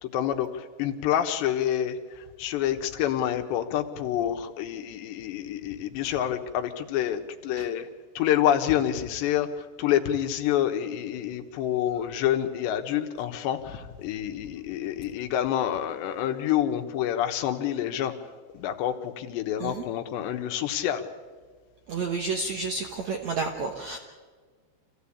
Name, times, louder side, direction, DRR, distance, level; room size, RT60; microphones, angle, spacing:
voice 1, 0.0-7.9 8.2-18.1 18.5-21.1, left 11 dB, 75° left, 6 dB, 3.3 m, -27 dB
voice 2, 21.9-24.0, right 4 dB, 85° right, 4 dB, 1.5 m, -30 dB
27.0 x 16.0 x 8.6 m, 1.5 s
omnidirectional pair, 5.2 m